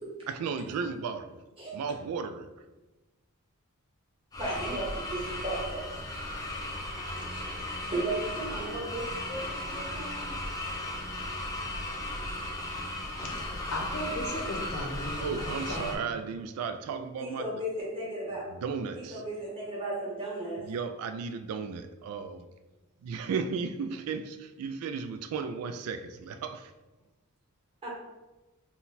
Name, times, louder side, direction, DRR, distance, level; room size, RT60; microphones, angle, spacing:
voice 1, 0.3-1.4 1.7-2.5 15.2-17.5 18.6-19.2 20.7-22.5 23.0-26.7, right 5 dB, 80° right, 0.3 m, -34 dB
sound 1, 4.3-16.0, left 1 dB, 15° left, 0.5 m, -36 dB
voice 2, 4.4-5.9 7.1-10.3 17.2-18.5 18.9-20.6 27.8-27.9, right 1 dB, 25° right, 1.3 m, -35 dB
voice 3, 13.7-16.0, left 1 dB, 75° left, 0.8 m, -36 dB
4.1 x 2.2 x 4.0 m
head